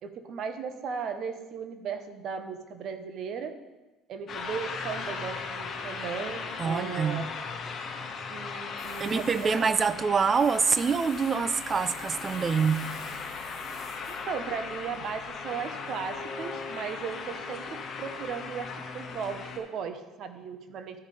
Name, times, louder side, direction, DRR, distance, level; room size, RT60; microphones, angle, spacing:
voice 1, 0.0-3.6 4.1-7.3 8.3-9.8 14.1-21.0, right 6 dB, 55° right, 0.9 m, -36 dB
sound 1, 4.3-19.6, left 5 dB, 45° left, 1.3 m, -38 dB
voice 2, 6.6-7.3 9.0-13.0, right 5 dB, 30° right, 0.4 m, -26 dB
Tools, 8.8-15.3, equal, 10° right, 2.4 m, -49 dB
13.0 x 5.3 x 3.3 m
supercardioid pair, 105°, 0 cm